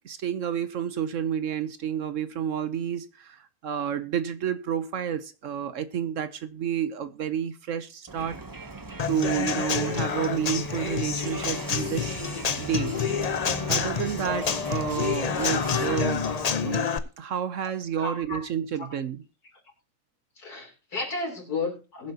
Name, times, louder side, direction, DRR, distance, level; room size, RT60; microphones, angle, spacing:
voice 1, 0.0-8.4 9.1-12.1 12.6-13.0 13.7-16.2 16.6-19.2, right 9 dB, 60° right, 13 dB, 1.0 m, -30 dB
Crowd, 8.1-16.9, right 3 dB, 25° right, 0.4 m, -39 dB
Human voice / Acoustic guitar / Drum, 9.0-17.0, left 6 dB, 50° left, 0.4 m, -28 dB
voice 2, 18.0-18.4 20.4-22.1, left 3 dB, 75° left, 1 dB, 4.1 m, -32 dB
21.0 x 7.6 x 2.8 m, 0.31 s
omnidirectional pair, 1.6 m